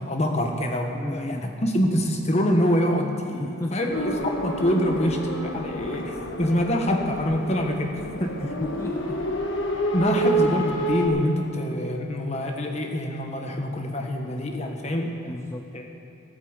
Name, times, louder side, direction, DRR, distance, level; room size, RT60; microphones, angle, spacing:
voice 1, 0.1-8.4 9.9-15.3 15.7-15.9, equal, 30° left, 3 dB, 1.3 m, -25 dB
voice 2, 0.9-1.5 3.4-3.9 8.4-9.2 15.3-15.7, left 1 dB, 15° left, 5 dB, 0.4 m, -33 dB
sound 1, 3.9-11.1, right 1 dB, 65° left, 1.4 m, -28 dB
14.5 x 8.5 x 8.0 m, 2.8 s
head